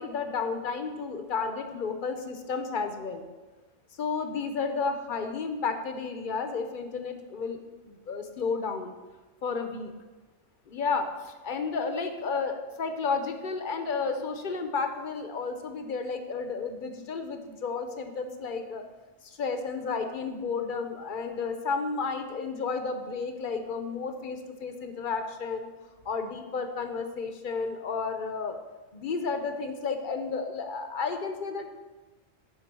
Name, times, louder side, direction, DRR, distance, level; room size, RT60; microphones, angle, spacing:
voice 1, 0.0-3.3 4.0-7.6 7.9-8.9 9.4-9.9 10.7-18.8 19.2-25.7 26.0-28.6 28.9-31.7, left 4 dB, 50° left, 7 dB, 0.8 m, -32 dB
10.5 x 4.0 x 6.1 m, 1.2 s
omnidirectional pair, 1.3 m